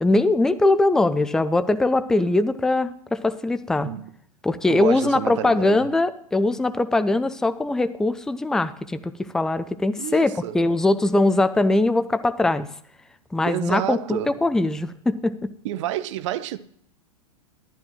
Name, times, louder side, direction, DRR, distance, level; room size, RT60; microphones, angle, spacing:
voice 1, 0.0-3.9 4.4-12.7 13.3-15.5, left 2 dB, 5° left, 0.4 m, -21 dB
voice 2, 4.7-5.8 10.0-10.6 13.5-14.4 15.6-16.6, right 13 dB, 55° right, 0.5 m, -29 dB
11.5 x 10.5 x 3.0 m
hypercardioid pair, 100°, 19 cm